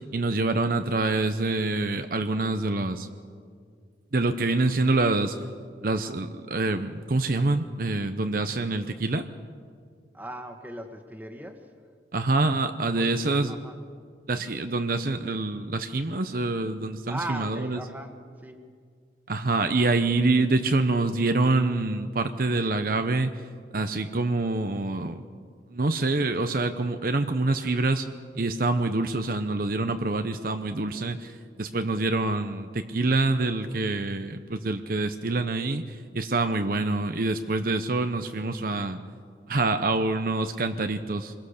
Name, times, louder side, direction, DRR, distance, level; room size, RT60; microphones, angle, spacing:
voice 1, 0.1-3.1 4.1-5.4 5.8-9.3 12.1-13.5 14.3-17.8 19.3-23.3 23.7-25.2 25.7-28.1 28.3-31.3 31.6-39.0 39.5-41.3, right 2 dB, 50° right, 8 dB, 0.8 m, -26 dB
voice 2, 10.1-11.7 12.9-13.2 13.5-13.8 17.1-18.7, right 1 dB, 10° right, 5 dB, 1.6 m, -38 dB
26.5 x 21.5 x 6.6 m, 2.1 s
head